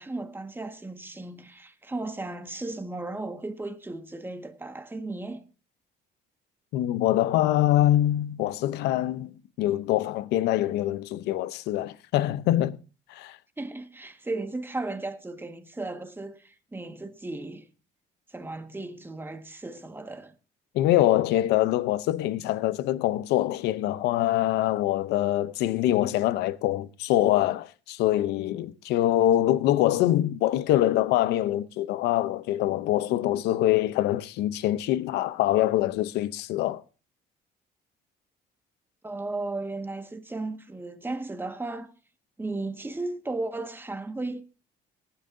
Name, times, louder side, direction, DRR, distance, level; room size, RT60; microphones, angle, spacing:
voice 1, 0.0-5.4 13.6-17.7 18.3-20.3 39.0-41.9 42.4-44.4, right 2 dB, 10° right, 1.6 m, -35 dB
voice 2, 6.7-12.8 13.1-13.4 20.7-36.8, left 14 dB, 85° left, 0.7 m, -24 dB
18.5 x 10.5 x 2.7 m
cardioid pair, 110°, 17 cm